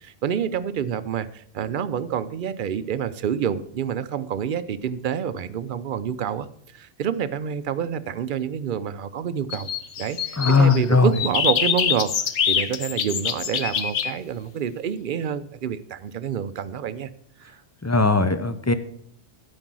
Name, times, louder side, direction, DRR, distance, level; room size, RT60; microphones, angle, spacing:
voice 1, 0.0-6.5 6.7-9.7 10.0-12.1 12.4-17.1 17.4-17.6, right 8 dB, 55° right, 15 dB, 0.6 m, -28 dB
sound 1, 9.5-10.8 11.1-14.1, left 8 dB, 80° left, 1.1 m, -25 dB
voice 2, 10.4-11.1 17.8-18.7, left 4 dB, 25° left, 11 dB, 0.4 m, -18 dB
13.0 x 5.4 x 6.1 m, 0.66 s
omnidirectional pair, 1.2 m